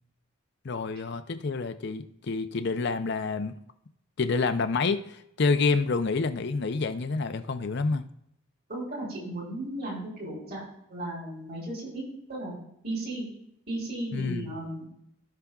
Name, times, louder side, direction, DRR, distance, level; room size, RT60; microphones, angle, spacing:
voice 1, 0.6-3.6 4.2-8.0 14.1-14.5, left 4 dB, 55° left, 9 dB, 0.5 m, -28 dB
voice 2, 8.7-10.6 10.9-12.0 12.3-12.5 12.8-13.3 13.7-15.0, right 1 dB, 50° right, -3 dB, 3.8 m, -35 dB
16.5 x 5.8 x 2.3 m, 0.76 s
head